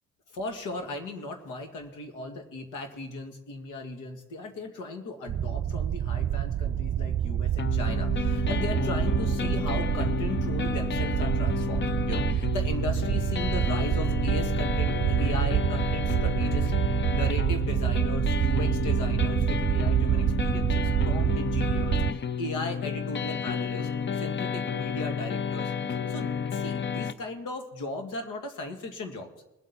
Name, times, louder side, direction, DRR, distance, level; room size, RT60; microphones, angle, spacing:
voice 1, 0.3-16.7 17.1-23.9 24.1-25.7 26.1-29.3, left 2 dB, 85° left, 5 dB, 2.2 m, -37 dB
sound 1, 5.3-22.1, right 10 dB, 40° right, 0.4 m, -27 dB
sound 2, 7.6-27.1, left 6 dB, 40° left, 0.7 m, -31 dB
sound 3, 8.5-13.7, equal, 10° left, 4.2 m, -51 dB
21.0 x 8.0 x 4.3 m, 1.0 s
cardioid pair, 90°, 30 cm